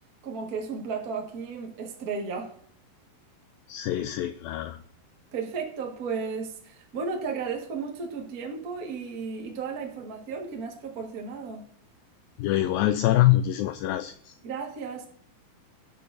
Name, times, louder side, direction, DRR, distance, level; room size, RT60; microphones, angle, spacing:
voice 1, 0.2-2.5 5.3-11.6 14.4-15.1, right 5 dB, 80° right, 0.8 m, -34 dB
voice 2, 3.7-4.8 12.4-14.1, left 14 dB, 85° left, 2.1 m, -24 dB
17.5 x 6.6 x 2.6 m
omnidirectional pair, 4.5 m